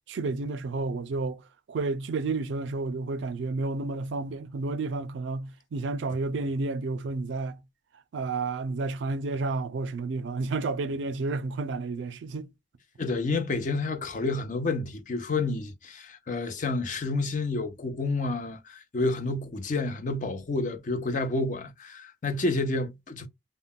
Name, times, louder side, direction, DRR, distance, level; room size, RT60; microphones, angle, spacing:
voice 1, 0.1-1.4 1.7-7.6 8.1-12.5, right 3 dB, 70° right, 0.4 m, -31 dB
voice 2, 13.0-23.3, left 3 dB, 40° left, 0.5 m, -29 dB
2.2 x 2.1 x 3.5 m
head